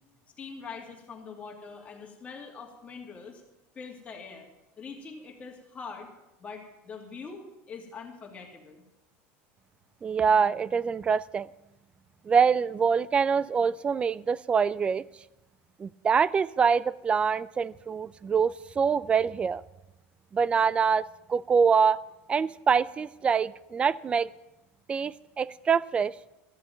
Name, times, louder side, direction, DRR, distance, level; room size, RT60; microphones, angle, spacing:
voice 1, 0.4-3.4 3.7-4.5 4.8-6.1 6.4-8.8, left 5 dB, 20° left, 0 dB, 2.6 m, -43 dB
voice 2, 10.0-11.5 12.3-15.0 15.8-19.6 20.3-22.0 22.3-24.3 24.9-26.1, right 6 dB, 20° right, 21 dB, 0.4 m, -25 dB
13.5 x 6.7 x 8.8 m, 0.98 s
supercardioid pair, 145°, 6 cm